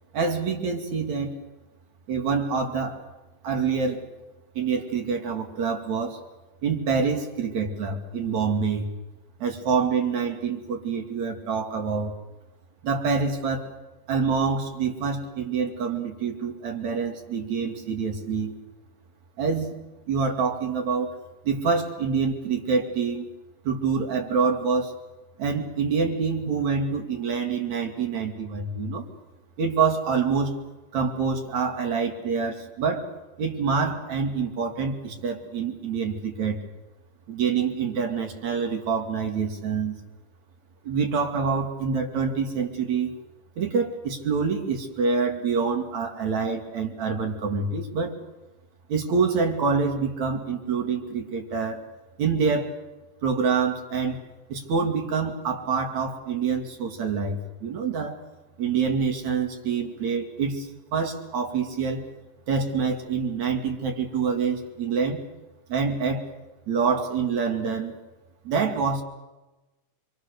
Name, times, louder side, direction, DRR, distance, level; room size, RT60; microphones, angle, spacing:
voice 1, 0.1-1.4 2.1-3.0 3.4-4.0 4.6-6.2 6.6-8.9 9.4-12.2 12.8-13.7 14.1-18.5 19.4-19.7 20.1-21.1 21.4-23.3 23.7-24.9 25.4-29.0 29.6-30.6 30.9-33.1 33.4-36.6 37.3-40.0 40.8-43.1 43.6-48.2 48.9-51.8 52.2-52.7 53.2-54.2 54.5-58.2 58.6-62.1 62.5-65.2 65.7-66.3 66.7-67.9 68.5-69.0, right 5 dB, 60° right, 3 dB, 3.8 m, -26 dB
26.0 x 25.0 x 6.8 m, 1.1 s
omnidirectional pair, 3.8 m